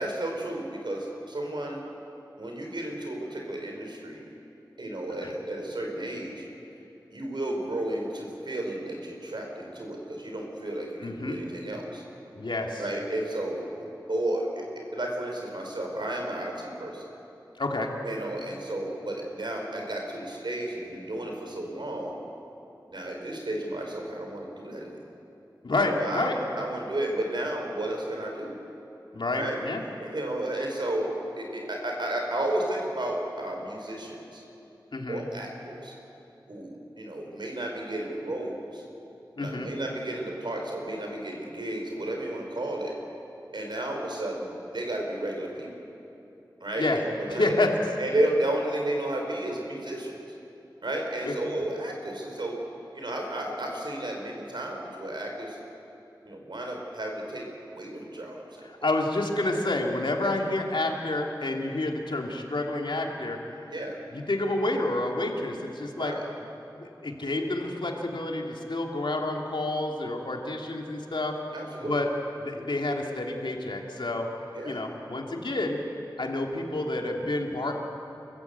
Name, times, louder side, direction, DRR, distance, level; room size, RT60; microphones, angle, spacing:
voice 1, 0.0-1.8 2.4-4.2 4.8-6.4 7.1-12.0 12.8-17.0 18.0-22.2 22.9-25.0 25.8-28.6 29.3-29.6 30.0-34.4 35.1-35.9 36.5-38.8 39.4-43.0 43.5-45.7 46.6-47.5 48.0-50.2 50.8-52.6 52.9-55.6 56.3-57.5 57.7-58.9 63.7-64.0 66.0-66.2 71.5-72.0 74.5-74.8, right 1 dB, 75° right, 0 dB, 4.6 m, -32 dB
voice 2, 11.0-11.4 12.3-12.9 17.6-17.9 25.6-26.4 29.1-29.8 34.9-35.2 39.4-39.7 46.8-47.0 47.3-47.7 51.2-51.5 58.6-63.4 64.1-66.1 66.7-71.3 71.8-72.1 72.4-74.3 74.6-75.8 76.2-77.7, left 2 dB, 80° left, 1 dB, 2.6 m, -29 dB
29.0 x 15.0 x 8.2 m, 2.9 s
wide cardioid pair, 65°, 8 cm